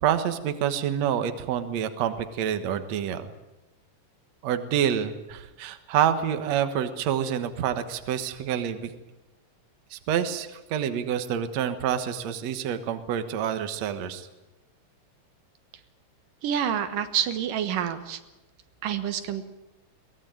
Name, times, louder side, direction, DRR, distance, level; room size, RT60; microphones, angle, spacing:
voice 1, 0.0-3.3 4.4-8.9 9.9-14.3, right 9 dB, 60° right, 9 dB, 2.4 m, -27 dB
voice 2, 16.4-18.2 18.8-19.4, right 9 dB, 80° right, 9 dB, 3.0 m, -28 dB
22.5 x 19.0 x 9.2 m, 1.0 s
omnidirectional pair, 3.8 m